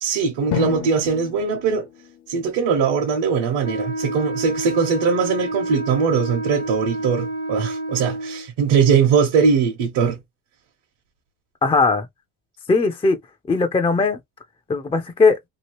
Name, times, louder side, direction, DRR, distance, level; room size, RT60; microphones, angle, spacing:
voice 1, 0.0-1.9 2.3-10.2, right 6 dB, 70° right, 1.1 m, -20 dB
Drum, 0.5-3.0, left 10 dB, 55° left, 0.7 m, -31 dB
Wind instrument woodwind instrument, 3.6-8.5, right 2 dB, 90° right, 1.1 m, -29 dB
voice 2, 11.6-12.1 12.7-13.2 13.5-14.2 14.7-15.4, left 4 dB, 15° left, 0.4 m, -18 dB
3.0 x 2.4 x 2.9 m
cardioid pair, 95°, 47 cm